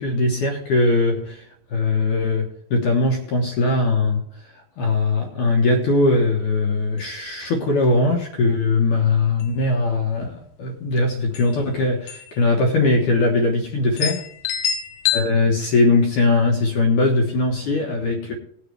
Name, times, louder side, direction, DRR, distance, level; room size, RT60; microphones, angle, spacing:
voice 1, 0.0-1.4 1.7-4.2 4.8-14.2 15.1-18.3, left 2 dB, 60° left, 0 dB, 2.3 m, -20 dB
sound 1, 6.9-7.0 7.3-7.4 7.8-8.2 8.7-9.0 9.3-9.9 11.0-11.1 11.3-11.5 12.1-12.4 12.6-12.7 13.4-13.5 14.0-15.2, left 9 dB, 85° left, 1.8 m, -26 dB
20.0 x 6.7 x 3.3 m, 0.67 s
omnidirectional pair, 5.2 m